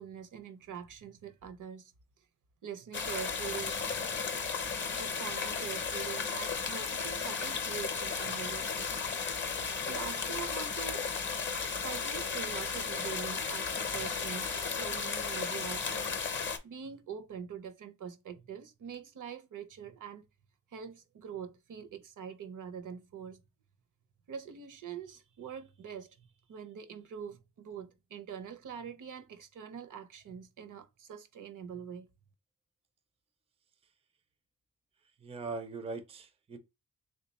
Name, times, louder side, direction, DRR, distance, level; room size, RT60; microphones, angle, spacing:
voice 1, 0.0-1.9 2.6-4.0 5.0-9.0 9.9-11.1 11.8-20.2 20.7-23.4 24.3-32.1, right 7 dB, 65° right, 0.6 m, -44 dB
sound 1, 2.9-16.6, left 5 dB, 35° left, 0.6 m, -34 dB
voice 2, 35.2-36.6, right 3 dB, 20° right, 0.4 m, -40 dB
3.5 x 2.2 x 3.9 m
wide cardioid pair, 165°, 34 cm